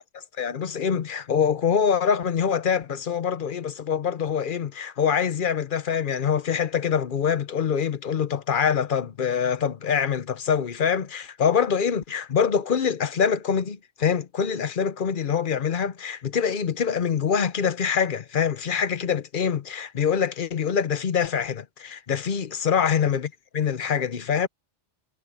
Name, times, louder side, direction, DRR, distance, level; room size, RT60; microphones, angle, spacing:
voice 1, 0.1-24.5, left 7 dB, 50° left, 0.9 m, -25 dB
omnidirectional pair, 1.2 m